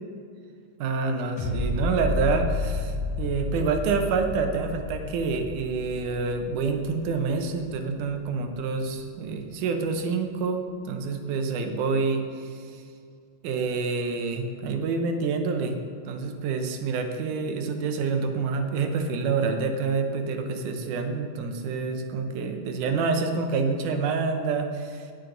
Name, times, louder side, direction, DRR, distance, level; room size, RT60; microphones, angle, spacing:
voice 1, 0.8-12.8 13.4-15.8 16.1-25.1, right 4 dB, 75° right, 5 dB, 2.3 m, -27 dB
sound 1, 1.4-8.4 8.9-9.0, left 2 dB, 60° left, 3.7 m, -31 dB
18.5 x 6.4 x 3.9 m, 2.3 s
omnidirectional pair, 3.8 m